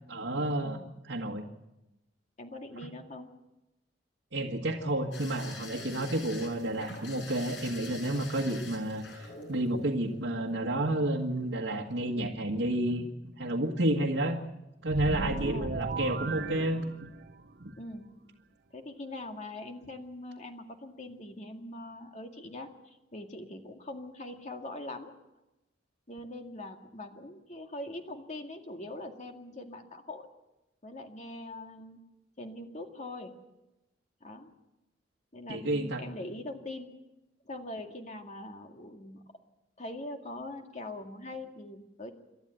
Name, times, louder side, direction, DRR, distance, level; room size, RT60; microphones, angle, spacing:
voice 1, 0.1-0.8 1.1-1.4 4.3-13.0 13.4-14.4 14.8-16.8 17.6-17.7 35.5-36.0, right 1 dB, 80° right, -1 dB, 1.7 m, -31 dB
voice 2, 2.4-3.3 15.2-15.8 17.8-18.1 18.7-25.1 26.1-30.3 30.8-32.0 32.4-33.3 34.2-34.5 35.3-36.9 37.5-39.2 39.8-42.1, left 1 dB, 40° left, 4 dB, 2.2 m, -42 dB
sound 1, 5.1-11.1 12.4-12.7 13.0-13.1, left 3 dB, 85° left, 6.3 m, -46 dB
sound 2, 14.8-17.4, right 3 dB, 60° right, 0.8 m, -34 dB
28.5 x 12.5 x 8.0 m, 0.96 s
head